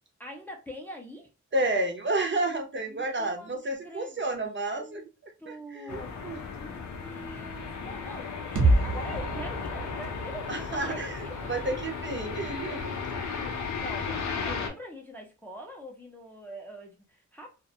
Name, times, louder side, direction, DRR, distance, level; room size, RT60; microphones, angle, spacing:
voice 1, 0.2-1.3 2.9-3.5 3.8-4.2 4.8-5.1 5.4-6.2 6.6-11.7 13.2-17.6, equal, 5° left, 0.5 m, -44 dB
voice 2, 1.5-5.0 5.5-6.4 10.5-12.9, right 2 dB, 40° right, 0.5 m, -31 dB
sound 1, 5.9-14.7, left 5 dB, 70° left, 0.5 m, -35 dB
sound 2, 8.6-12.4, right 2 dB, 85° right, 0.6 m, -29 dB
2.4 x 2.1 x 2.6 m
wide cardioid pair, 135°, 30 cm